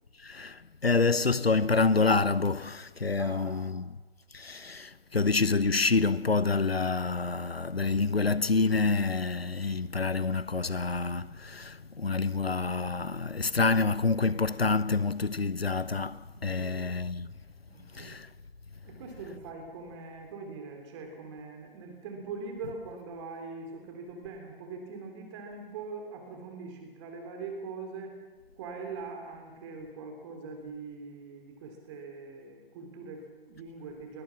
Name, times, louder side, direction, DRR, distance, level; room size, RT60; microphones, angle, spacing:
voice 1, 0.2-3.8 4.3-17.3 17.9-18.3, left 4 dB, 90° left, 0.9 m, -27 dB
voice 2, 3.2-3.8 16.5-16.8 17.7-18.2 18.8-28.2 28.6-34.2, right 4 dB, 30° right, 3.3 m, -42 dB
22.0 x 19.5 x 7.3 m
figure-of-eight pair, 135°, 30 cm